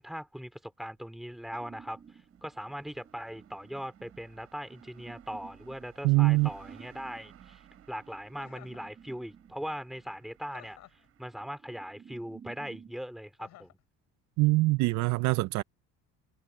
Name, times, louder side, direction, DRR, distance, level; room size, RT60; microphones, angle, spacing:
voice 1, 0.0-7.6 7.9-10.8 11.2-13.7, equal, ahead, 2.8 m, -40 dB
sound 1, 1.0-11.6, right 11 dB, 50° right, 6.0 m, -60 dB
sound 2, 1.5-13.0, right 7 dB, 25° right, 1.6 m, -54 dB
voice 2, 6.0-6.5 14.4-15.6, right 22 dB, 70° right, 0.6 m, -24 dB
Chuckle chortle, 8.3-8.9 10.5-11.1 13.4-13.8, left 15 dB, 65° left, 4.6 m, -53 dB
cardioid pair, 115°, 29 cm